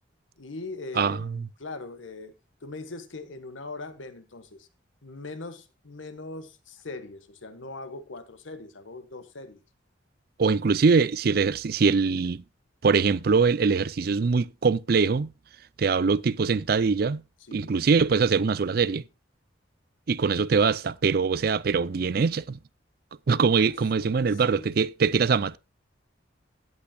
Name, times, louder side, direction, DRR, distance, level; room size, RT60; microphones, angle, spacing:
voice 1, 0.4-2.3 2.6-4.7 5.0-9.6 17.5-17.7 23.6-24.7, left 3 dB, 85° left, 1.4 m, -41 dB
voice 2, 1.0-1.5 10.4-12.4 12.8-15.3 15.8-17.2 17.5-19.0 20.1-22.6 23.3-25.6, right 5 dB, 50° right, 0.4 m, -23 dB
16.5 x 8.5 x 2.3 m
head